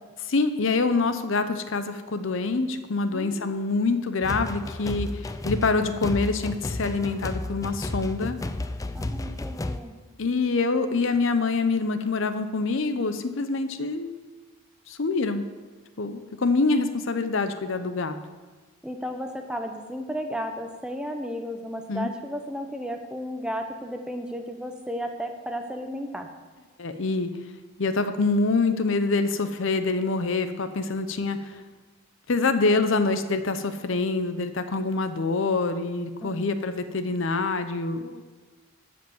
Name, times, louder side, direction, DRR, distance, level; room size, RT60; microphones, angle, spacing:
voice 1, 0.2-8.4 10.2-14.1 14.9-15.5 16.0-18.1 21.9-22.1 26.8-27.3 27.8-31.6 32.3-38.3, left 3 dB, 60° left, 10 dB, 0.7 m, -25 dB
voice 2, 3.1-3.5 8.9-9.9 18.8-26.3 36.2-36.7, equal, 5° right, 4 dB, 0.7 m, -34 dB
sound 1, 4.2-9.8, left 2 dB, 15° left, 0.3 m, -32 dB
13.5 x 5.2 x 7.1 m, 1.3 s
head